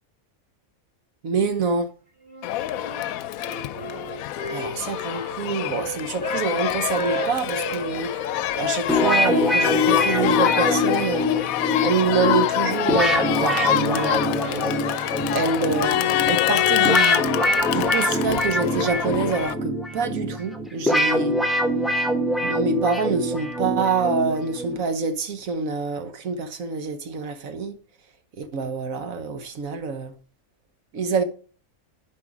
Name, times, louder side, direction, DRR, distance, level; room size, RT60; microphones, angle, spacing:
voice 1, 1.2-1.9 4.5-8.1 8.5-17.4 17.7-21.3 22.4-27.8 28.4-30.1 30.9-31.2, right 4 dB, 70° right, 1.4 m, -26 dB
Wind instrument woodwind instrument, 2.2-3.1 3.4-6.5 6.8-8.3 8.9-11.4, right 3 dB, 20° right, 1.9 m, -35 dB
Crowd, 2.4-19.5, left 12 dB, 80° left, 1.0 m, -25 dB
sound 1, 8.9-24.8, left 1 dB, ahead, 0.9 m, -24 dB
11.0 x 5.0 x 4.9 m
omnidirectional pair, 1.5 m